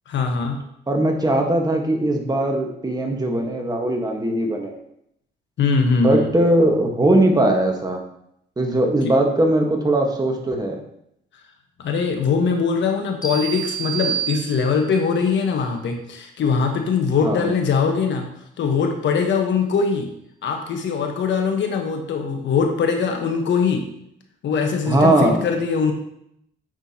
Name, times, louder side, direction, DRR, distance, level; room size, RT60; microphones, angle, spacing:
voice 1, 0.1-0.6 5.6-6.3 11.8-18.3 18.6-20.1 20.4-23.8 24.4-25.9, left 5 dB, 70° left, 4 dB, 1.2 m, -21 dB
voice 2, 0.9-4.8 6.0-8.0 8.6-10.8 17.2-17.5 24.9-25.4, right 1 dB, 20° right, 2 dB, 1.4 m, -19 dB
sound 1, 13.2-15.0, right 8 dB, 20° left, 1.2 m, -28 dB
8.9 x 6.2 x 2.9 m, 0.75 s
cardioid pair, 90°, 20 cm